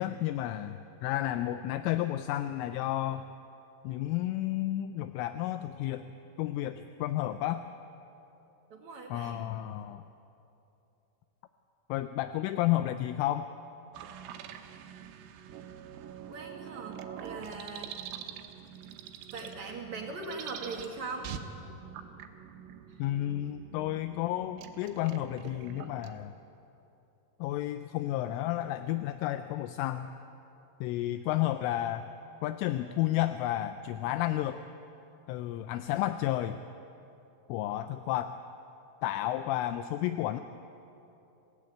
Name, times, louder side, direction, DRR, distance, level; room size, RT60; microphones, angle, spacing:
voice 1, 0.0-3.3 3.8-6.1 6.4-7.6 9.1-10.0 11.9-13.5 23.0-26.3 27.4-30.1 30.8-32.1 32.4-34.6 35.3-36.6 37.5-38.4 39.0-40.4, left 13 dB, 85° left, 10 dB, 3.1 m, -31 dB
voice 2, 8.7-9.4 16.3-17.9 19.3-21.3 22.9-23.0, right 3 dB, 50° right, 1 dB, 2.3 m, -40 dB
sound 1, 13.9-26.2, right 8 dB, 90° right, 3.8 m, -45 dB
27.5 x 17.0 x 8.7 m, 2.9 s
omnidirectional pair, 5.8 m